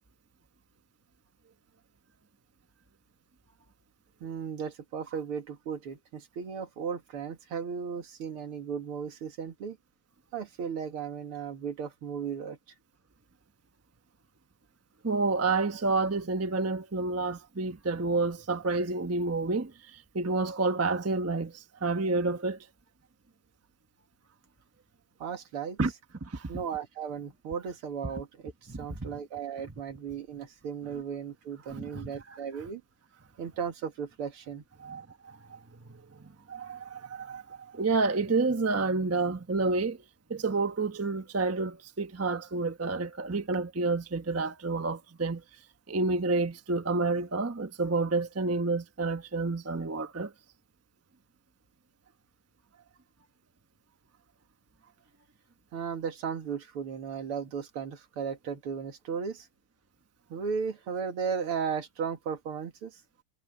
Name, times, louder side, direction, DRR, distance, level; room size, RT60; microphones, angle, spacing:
voice 1, 4.2-9.8 10.3-12.6 25.2-25.8 26.5-32.8 33.4-34.6 55.7-59.5 60.3-63.0, right 6 dB, 80° right, 2.7 m, -35 dB
voice 2, 15.0-22.7 25.8-25.9 26.2-26.5 28.7-29.1 31.7-32.4 34.8-35.6 35.9-40.0 40.3-45.4 45.9-50.3, right 3 dB, 20° right, 0.4 m, -29 dB
omnidirectional pair, 2.4 m